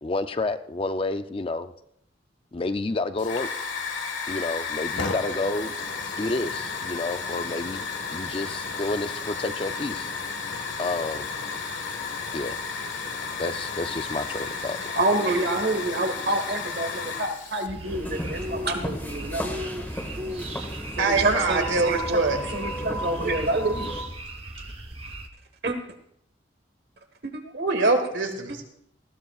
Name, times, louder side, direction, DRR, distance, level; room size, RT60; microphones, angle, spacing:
voice 1, 0.0-1.7 2.5-3.7 4.3-5.7 6.2-7.8 8.1-10.1 10.8-11.3 12.3-12.6 13.4-14.8, left 2 dB, 30° left, 10 dB, 0.4 m, -30 dB
Hiss / Fire, 3.2-17.7, left 5 dB, 85° left, 1.5 m, -33 dB
voice 2, 14.9-19.9 21.0-23.9 25.6-25.8 27.2-27.4 28.5-28.6, right 2 dB, 55° right, 7 dB, 1.4 m, -27 dB
sound 1, 17.7-25.3, right 1 dB, 30° right, 1.0 m, -37 dB
sound 2, 17.9-24.0, equal, 10° left, 1.7 m, -34 dB
voice 3, 21.0-22.4 27.5-28.7, right 3 dB, 85° right, 4 dB, 2.2 m, -24 dB
19.0 x 16.0 x 2.4 m, 0.74 s
head